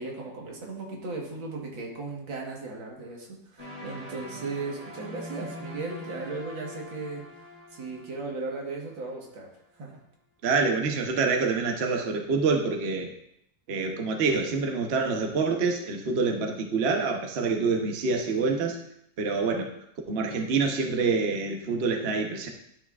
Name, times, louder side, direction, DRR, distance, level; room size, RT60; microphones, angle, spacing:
voice 1, 0.0-7.2 7.7-9.5 9.8-10.0, right 3 dB, 85° right, -1 dB, 2.2 m, -36 dB
sound 1, 3.6-9.5, left 1 dB, 20° right, 2.2 m, -43 dB
voice 2, 10.4-13.1 13.7-18.8 19.2-19.7 20.1-22.5, right 4 dB, 45° right, 2 dB, 0.9 m, -26 dB
12.0 x 5.9 x 2.4 m, 0.75 s
omnidirectional pair, 2.1 m